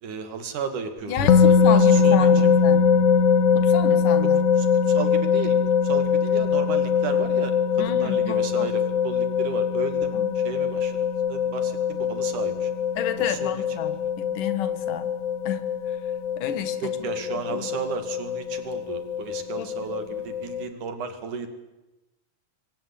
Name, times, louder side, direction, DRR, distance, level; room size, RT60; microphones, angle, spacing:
voice 1, 0.0-1.2 1.4-2.3 4.6-5.6 5.8-7.6 7.9-10.9 11.3-12.7 13.3-13.6 16.8-21.5, right 6 dB, 75° right, 8 dB, 3.9 m, -34 dB
voice 2, 1.0-2.9 3.5-4.4 7.8-8.7 10.1-10.4 13.0-15.1 15.4-16.0 16.4-17.1 17.5-17.7 19.6-19.7, left 9 dB, 90° left, 11 dB, 3.2 m, -31 dB
Bowed string instrument, 1.2-6.8, left 1 dB, 55° left, 3.1 m, -38 dB
sound 1, 1.3-20.6, left 6 dB, 70° left, 2.5 m, -22 dB
27.5 x 22.0 x 8.6 m, 1.0 s
omnidirectional pair, 3.6 m